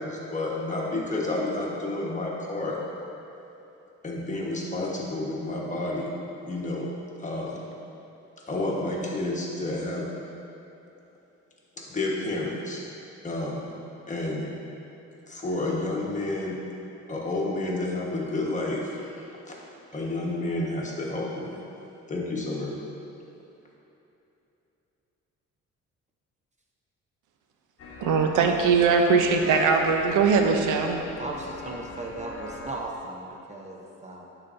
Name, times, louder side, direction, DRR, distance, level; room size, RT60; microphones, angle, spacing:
voice 1, 0.0-2.8 4.0-6.1 6.4-6.9 7.2-7.6 8.5-10.0 11.9-12.8 13.2-13.7 14.1-14.5 15.3-16.6 17.1-19.5 19.9-21.6 22.1-22.7, left 2 dB, 25° left, -4 dB, 1.2 m, -30 dB
sound 1, 27.8-32.8, left 2 dB, 50° left, 0.7 m, -42 dB
voice 2, 28.0-31.0, right 5 dB, 85° right, 4 dB, 0.6 m, -21 dB
voice 3, 31.2-34.3, right 2 dB, 25° right, -1 dB, 0.7 m, -37 dB
10.5 x 4.1 x 2.6 m, 2.9 s
cardioid pair, 90°, 30 cm